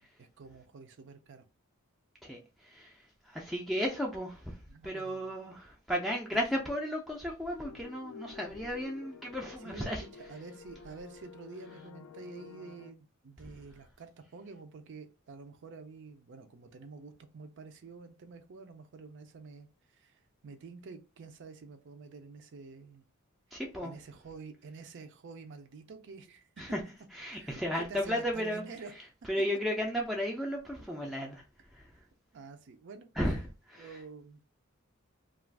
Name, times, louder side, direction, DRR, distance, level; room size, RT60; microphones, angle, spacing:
voice 1, 0.0-1.5 4.7-5.4 9.6-9.9 10.2-19.7 19.9-23.0 23.8-26.5 27.3-28.9 31.9-32.1 32.3-33.1 33.8-34.4, right 4 dB, 60° right, 0.5 m, -49 dB
voice 2, 2.2-10.0 23.5-23.9 26.6-26.8 27.1-28.6 29.3-31.4 31.7-31.9 33.2-33.4 33.7-34.0, equal, ahead, 0.4 m, -34 dB
sound 1, 7.6-12.9, left 6 dB, 85° left, 0.4 m, -51 dB
2.4 x 2.3 x 3.3 m
head